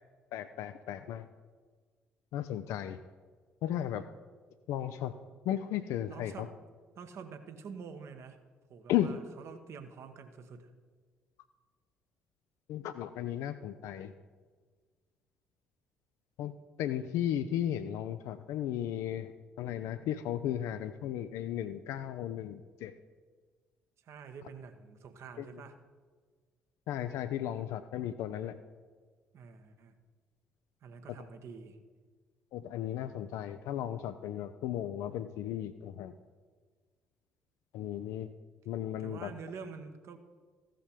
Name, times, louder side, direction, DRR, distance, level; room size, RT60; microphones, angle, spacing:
voice 1, 0.3-1.3 2.3-3.0 3.6-4.1 4.7-5.1 5.4-6.5 8.9-9.2 12.7-14.1 16.4-16.5 16.8-19.3 19.6-22.9 25.4-25.6 26.9-28.6 31.1-31.2 32.5-36.1 37.7-38.3 38.7-39.3, left 11 dB, 65° left, 10 dB, 0.4 m, -35 dB
voice 2, 6.1-6.5 7.0-8.4 8.7-10.7 24.0-25.8 27.6-27.7 29.3-29.9 30.8-31.8 39.0-40.2, right 5 dB, 55° right, 8 dB, 1.1 m, -47 dB
15.0 x 5.6 x 5.0 m, 1.5 s
figure-of-eight pair, 45°, 6 cm